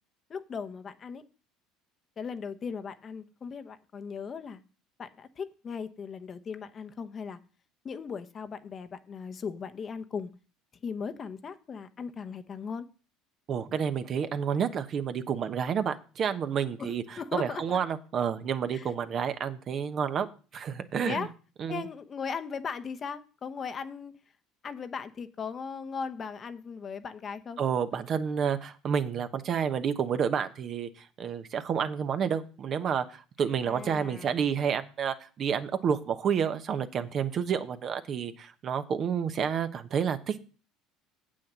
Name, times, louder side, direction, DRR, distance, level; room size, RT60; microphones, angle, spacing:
voice 1, 0.3-1.2 2.2-4.6 5.0-7.4 7.8-10.3 10.8-12.9 16.8-17.8 18.7-18.9 21.0-21.3 21.7-24.1 24.6-27.6 33.6-34.4, left 6 dB, 40° left, 10 dB, 0.9 m, -38 dB
voice 2, 13.5-20.3 20.5-21.3 21.6-21.8 27.6-40.4, right 7 dB, 45° right, 10 dB, 1.0 m, -30 dB
7.8 x 6.3 x 7.4 m, 0.37 s
hypercardioid pair, 75°, 0 cm